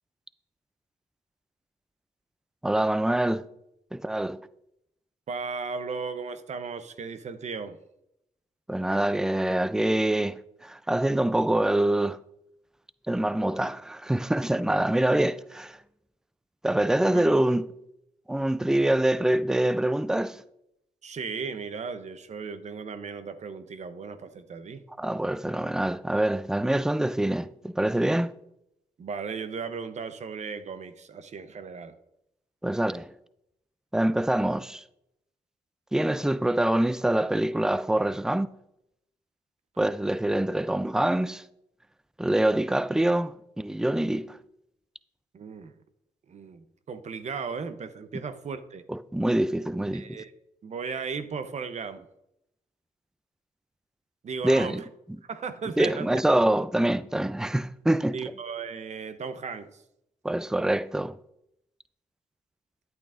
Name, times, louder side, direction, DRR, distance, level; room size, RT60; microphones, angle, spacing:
voice 1, 2.6-3.5 3.9-4.4 8.7-12.2 13.1-15.8 16.6-17.7 18.3-20.4 25.0-28.4 32.6-33.1 33.9-34.8 35.9-38.6 39.8-41.4 42.2-44.4 48.9-50.2 54.4-54.8 55.8-58.3 60.2-61.2, right 1 dB, 5° right, 0.4 m, -25 dB
voice 2, 5.3-7.8 17.1-17.2 21.0-24.8 29.0-32.0 45.3-45.7 46.3-48.8 49.9-50.3 50.6-52.1 54.2-54.8 55.2-56.2 58.1-59.8, right 5 dB, 55° right, 0.8 m, -36 dB
10.5 x 8.7 x 2.5 m
cardioid pair, 70°, 14 cm